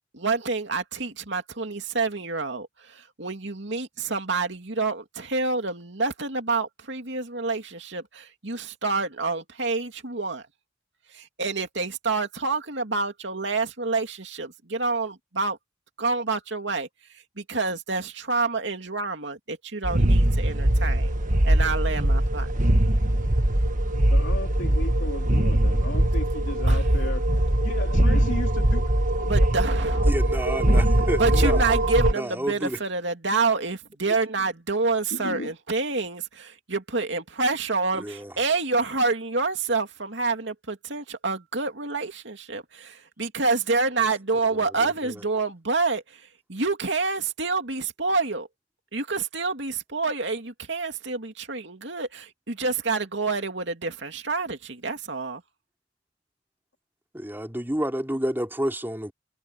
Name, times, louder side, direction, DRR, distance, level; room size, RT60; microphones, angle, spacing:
voice 1, 0.1-10.4 11.1-15.6 16.0-21.1 21.4-22.5 26.7-26.8 29.3-30.0 31.2-48.5 48.9-55.4, right 3 dB, 70° right, 2.8 m, -28 dB
sound 1, 19.8-32.1, right 1 dB, 45° right, 1.5 m, -21 dB
voice 2, 24.1-27.3 27.6-29.4 29.9-30.1 30.5-31.3 35.1-35.5, left 2 dB, 75° left, 3.3 m, -36 dB
voice 3, 30.1-31.7 32.1-32.8 38.0-38.3 44.5-45.2 57.1-59.1, equal, 10° right, 3.3 m, -30 dB
head